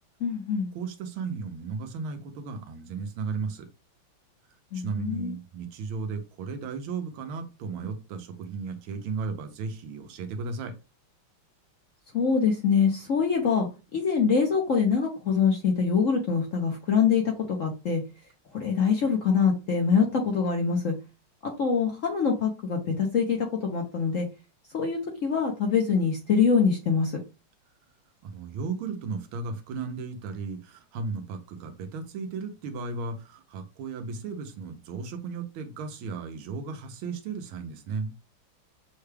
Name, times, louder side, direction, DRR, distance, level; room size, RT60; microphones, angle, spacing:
voice 1, 0.2-0.7 4.7-5.3 12.1-13.7 13.9-17.2 17.5-18.0 18.5-20.9 21.6-24.3 24.7-27.1, left 6 dB, 60° left, 1 dB, 0.8 m, -24 dB
voice 2, 0.7-3.7 4.7-10.8 28.2-38.1, right 4 dB, 80° right, 5 dB, 1.6 m, -35 dB
6.5 x 2.3 x 3.3 m, 0.28 s
omnidirectional pair, 2.3 m